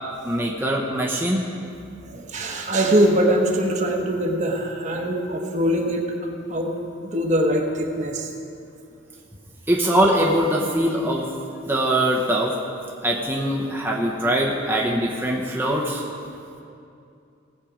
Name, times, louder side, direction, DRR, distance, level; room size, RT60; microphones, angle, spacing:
voice 1, 0.3-1.5 9.7-11.3 11.7-12.5 13.0-16.0, right 1 dB, 10° right, -4 dB, 0.9 m, -22 dB
voice 2, 2.1-6.8 7.1-8.3, right 1 dB, 35° right, 1 dB, 1.1 m, -22 dB
18.5 x 7.5 x 5.0 m, 2.6 s
head